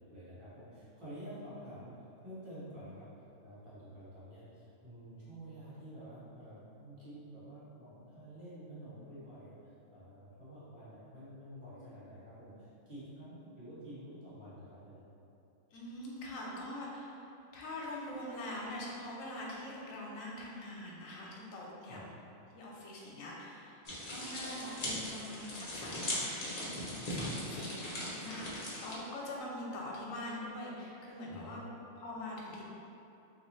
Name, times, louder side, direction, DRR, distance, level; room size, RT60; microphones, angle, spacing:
voice 1, 0.0-1.9 2.2-3.1 3.4-9.6 9.9-15.1 21.9-22.0 26.9-27.6 31.3-31.6, right 1 dB, 25° right, -11 dB, 1.0 m, -49 dB
voice 2, 15.7-17.2 17.5-22.1 22.5-23.8 24.1-26.5 27.1-31.6 32.0-32.7, left 1 dB, 80° left, -3 dB, 1.0 m, -43 dB
sound 1, 23.8-29.0, left 1 dB, 40° left, 0.6 m, -39 dB
3.3 x 2.7 x 3.1 m, 2.8 s
omnidirectional pair, 1.4 m